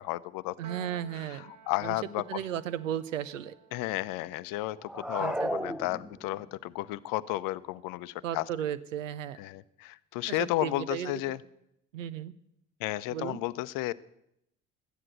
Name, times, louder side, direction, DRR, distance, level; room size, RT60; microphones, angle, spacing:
voice 1, 0.0-0.6 1.7-2.2 3.7-8.4 9.4-11.4 12.8-13.9, left 17 dB, 60° left, 17 dB, 0.7 m, -33 dB
Piano, 0.6-7.1, right 7 dB, 55° right, 1.3 m, -55 dB
voice 2, 0.6-1.5 1.8-2.0 2.3-3.5 5.2-5.8 8.2-9.4 10.3-11.2 11.9-12.3 13.1-13.4, right 10 dB, 85° right, 15 dB, 0.7 m, -35 dB
sound 1, 4.8-6.5, equal, ahead, 0.6 m, -33 dB
13.0 x 9.7 x 8.0 m, 0.81 s
hypercardioid pair, 55°, 37 cm